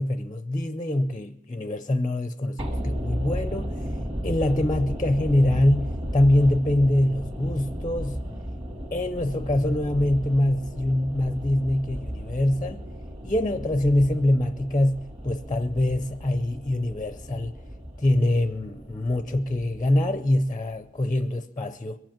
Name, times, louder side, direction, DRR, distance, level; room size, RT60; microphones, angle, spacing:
voice 1, 0.0-3.8 4.2-8.2 8.9-12.8 13.2-17.5 18.0-22.0, left 1 dB, 20° left, 0.5 m, -24 dB
sound 1, 2.6-20.8 21.0-21.1, equal, 30° right, 1.9 m, -34 dB
22.5 x 7.8 x 7.3 m
head